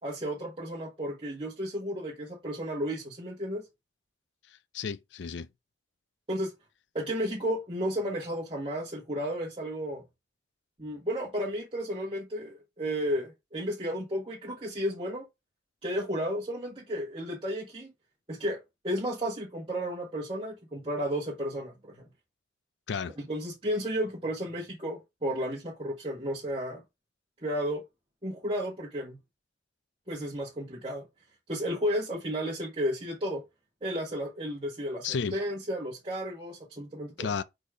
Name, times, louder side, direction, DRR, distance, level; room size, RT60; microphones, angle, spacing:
voice 1, 0.0-3.6 6.3-6.5 6.9-10.0 10.8-15.2 15.8-17.9 18.3-18.6 18.8-22.1 23.2-26.8 27.4-27.8 28.2-29.2 30.1-31.0 31.5-33.4 33.8-37.3, equal, 30° right, 1.5 m, -33 dB
voice 2, 4.5-5.5 22.9-23.1 35.0-35.4 37.2-37.4, left 6 dB, 75° left, 0.4 m, -33 dB
5.1 x 4.2 x 4.8 m
head